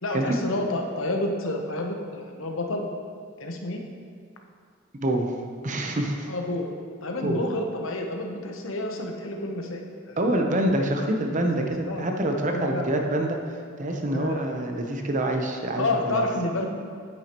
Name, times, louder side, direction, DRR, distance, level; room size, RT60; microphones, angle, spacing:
voice 1, 0.0-2.9 3.4-3.8 6.3-6.7 7.0-10.8 11.4-12.1 12.5-13.0 14.1-14.4 15.8-16.7, left 2 dB, 90° left, 2 dB, 1.0 m, -30 dB
voice 2, 5.0-5.3 5.6-6.3 7.2-7.4 10.2-13.4 13.8-16.2, right 1 dB, 40° right, 3 dB, 0.8 m, -26 dB
9.2 x 9.1 x 3.0 m, 2.1 s
head